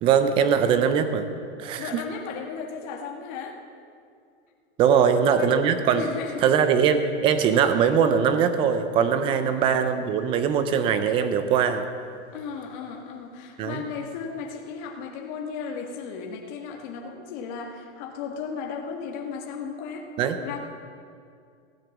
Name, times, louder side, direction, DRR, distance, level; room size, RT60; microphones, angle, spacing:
voice 1, 0.0-1.3 1.6-2.0 4.8-6.0 6.4-11.9 13.6-13.8 20.2-20.4, right 7 dB, 15° right, 10 dB, 0.4 m, -21 dB
voice 2, 1.8-3.6 4.9-5.5 5.9-6.6 9.3-9.6 12.3-20.1 20.4-20.6, left 6 dB, 40° left, 1 dB, 1.8 m, -35 dB
16.0 x 9.8 x 7.3 m, 2.4 s
supercardioid pair, 165°, 36 cm